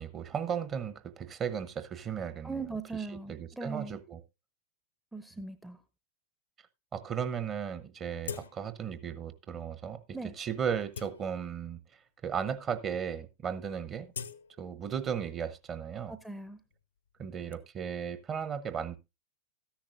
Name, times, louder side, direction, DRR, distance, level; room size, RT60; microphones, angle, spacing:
voice 1, 0.0-2.6 3.3-4.2 6.9-11.8 12.2-14.1 14.6-16.1 17.2-19.0, right 7 dB, 25° right, 0.9 m, -35 dB
voice 2, 2.4-4.0 5.1-5.8 10.1-10.3 16.1-16.6, right 4 dB, 5° right, 0.6 m, -39 dB
sound 1, 8.2-8.9 9.3-9.4 10.1-10.2 10.7-11.8 12.5-12.6 12.8-13.2 13.5-15.3 15.6-17.5, left 7 dB, 70° left, 0.6 m, -46 dB
13.5 x 10.5 x 2.5 m
figure-of-eight pair, 90°, 0 cm